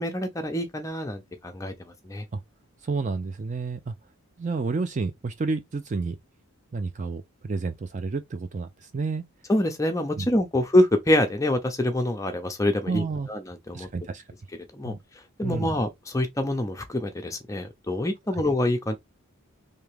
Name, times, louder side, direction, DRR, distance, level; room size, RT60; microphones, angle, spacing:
voice 1, 0.0-2.2 9.5-13.9 14.7-15.0 15.4-18.9, left 1 dB, 15° left, 0.6 m, -26 dB
voice 2, 2.8-3.9 4.4-6.2 6.7-9.2 10.2-10.3 12.9-13.3 13.7-14.2 14.8-15.0 15.4-15.7 18.3-18.4, right 4 dB, 35° right, 0.3 m, -30 dB
3.5 x 2.7 x 3.3 m
head